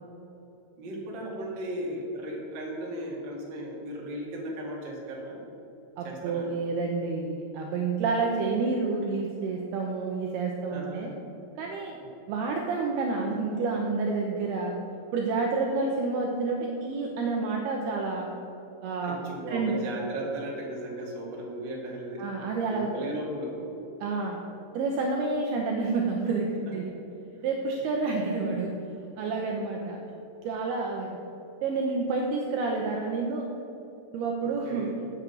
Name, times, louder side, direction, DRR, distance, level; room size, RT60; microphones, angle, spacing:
voice 1, 0.8-5.4 6.0-6.5 10.7-11.1 19.0-22.2 22.7-23.7 27.1-27.2 34.4-34.9, right 1 dB, 45° right, -3 dB, 1.4 m, -36 dB
voice 2, 6.0-11.1 11.6-12.0 12.3-14.7 15.1-18.3 18.8-19.2 19.5-19.8 22.2-23.2 24.0-24.4 24.7-27.0 27.4-28.7 29.2-30.0 30.4-31.1 31.6-33.5 34.1-34.9, right 4 dB, 80° right, 0 dB, 2.4 m, -29 dB
7.6 x 7.5 x 8.0 m, 2.9 s
omnidirectional pair, 5.4 m